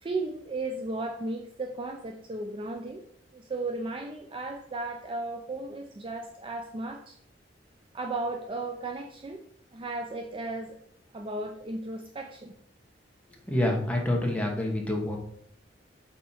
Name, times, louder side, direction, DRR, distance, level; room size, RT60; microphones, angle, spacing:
voice 1, 0.0-3.0 3.3-7.2 7.9-9.4 9.7-10.8 11.1-12.5, right 2 dB, 30° right, 3 dB, 0.4 m, -35 dB
voice 2, 13.5-15.2, left 1 dB, 5° left, 0 dB, 1.1 m, -27 dB
5.5 x 4.1 x 4.2 m, 0.66 s
head